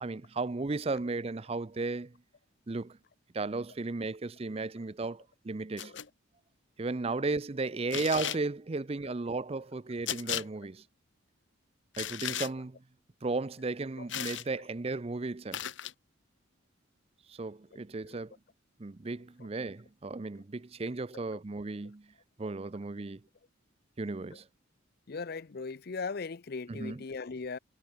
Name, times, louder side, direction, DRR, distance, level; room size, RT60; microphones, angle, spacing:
voice 1, 0.0-2.1 2.7-3.0 3.3-5.9 6.8-10.8 12.0-12.8 13.2-15.6 17.3-18.3 18.8-22.1 22.4-23.2 24.0-24.5 26.7-27.0, right 3 dB, 30° right, 0.5 m, -35 dB
sound 1, 5.8-6.1 7.9-8.4 10.1-10.5 11.9-12.5 14.1-14.5 15.5-15.9, left 10 dB, 65° left, 1.4 m, -35 dB
voice 2, 25.1-27.6, left 4 dB, 50° left, 0.5 m, -38 dB
head